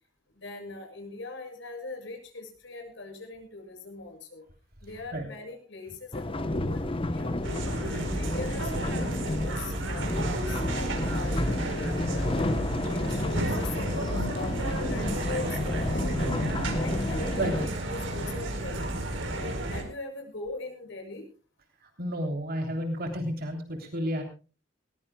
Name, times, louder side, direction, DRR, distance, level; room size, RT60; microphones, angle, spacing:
voice 1, 0.4-4.4 4.8-7.4 7.8-12.4 12.9-16.3 16.7-21.3 24.1-24.2, left 3 dB, 70° left, 3 dB, 7.2 m, -41 dB
sound 1, 6.1-17.7, left 1 dB, 30° left, 0.9 m, -31 dB
sound 2, 7.4-19.8, right 1 dB, 70° right, 4.5 m, -32 dB
Crowd, 14.6-20.0 20.4-20.5, right 3 dB, 35° right, 4.0 m, -49 dB
voice 2, 22.0-24.2, equal, 50° right, 3 dB, 3.3 m, -31 dB
21.5 x 20.5 x 2.3 m, 0.35 s
head